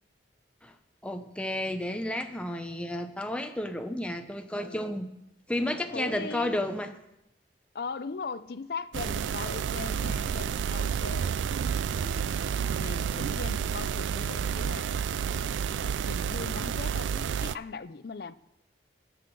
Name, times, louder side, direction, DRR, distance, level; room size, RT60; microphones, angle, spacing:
voice 1, 1.0-5.1 5.5-6.9, left 1 dB, 5° left, 0.7 m, -32 dB
voice 2, 4.6-5.0 5.9-6.6 7.7-11.3 11.9-12.4 12.8-14.9 15.3-18.3, left 4 dB, 55° left, 0.5 m, -39 dB
sound 1, 8.9-17.6, right 7 dB, 90° right, 0.4 m, -30 dB
12.0 x 6.2 x 7.7 m
head